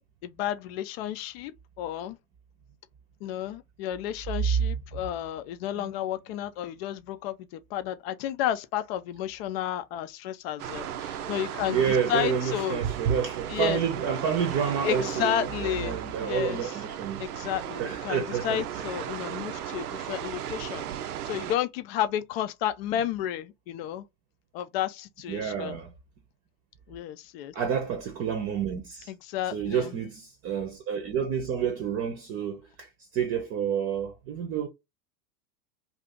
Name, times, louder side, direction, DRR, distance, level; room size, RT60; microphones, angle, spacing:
voice 1, 0.2-1.5 1.8-2.2 3.2-12.8 13.5-13.8 14.8-16.8 17.2-24.0 24.5-25.8 26.9-27.5 29.1-29.9, left 11 dB, 40° left, 0.5 m, -32 dB
sound 1, 10.6-21.6, right 10 dB, 70° right, 0.6 m, -36 dB
voice 2, 11.7-17.2 17.8-18.7 25.3-25.9 27.5-29.1 29.5-34.7, right 7 dB, 30° right, 0.8 m, -29 dB
2.8 x 2.5 x 3.5 m
hypercardioid pair, 95°, 47 cm